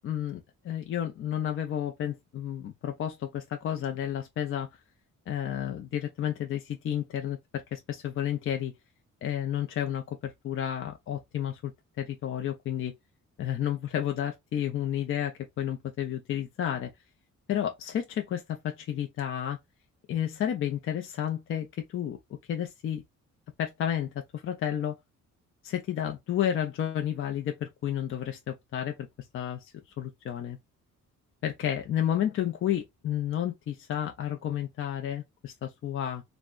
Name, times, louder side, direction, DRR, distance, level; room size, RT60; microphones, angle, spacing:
voice 1, 0.0-4.7 5.3-8.7 9.2-11.7 12.0-12.9 13.4-16.9 17.5-19.6 20.1-22.2 22.5-23.0 23.6-25.0 25.6-29.0 29.3-29.7 30.0-30.6 31.4-36.2, left 10 dB, 40° left, 0.4 m, -31 dB
3.4 x 2.1 x 2.2 m
cardioid pair, 155°, 31 cm